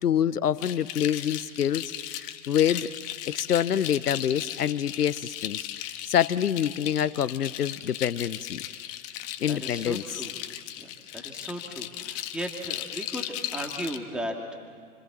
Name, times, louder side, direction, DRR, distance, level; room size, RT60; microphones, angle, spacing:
voice 1, 0.0-2.9 3.3-5.7 6.0-8.6 9.4-10.2, left 9 dB, 80° left, 17 dB, 0.9 m, -26 dB
sound 1, 0.6-14.0, left 12 dB, 30° left, 1.5 m, -37 dB
voice 2, 9.5-10.3 10.8-10.9 11.1-14.6, equal, ahead, 2 dB, 2.2 m, -36 dB
29.0 x 26.0 x 7.4 m, 2.2 s
hypercardioid pair, 120°, 45 cm